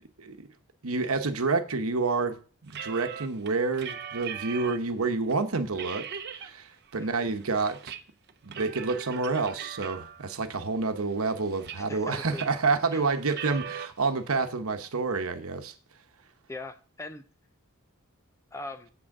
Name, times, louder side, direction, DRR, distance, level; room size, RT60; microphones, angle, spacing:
voice 1, 0.8-6.1 6.4-7.9 8.4-15.7, right 4 dB, 75° right, 1.0 m, -29 dB
sound 1, 2.7-4.9 5.3-5.4 5.7-6.5 6.9-8.0 8.3-10.3 10.9-12.0 12.3-12.7 13.2-13.9, right 7 dB, 50° right, 0.8 m, -40 dB
voice 2, 6.9-7.3 11.8-12.4 12.9-13.0 16.5-17.2 18.5-18.9, left 2 dB, 15° left, 0.6 m, -41 dB
7.9 x 6.2 x 6.5 m
head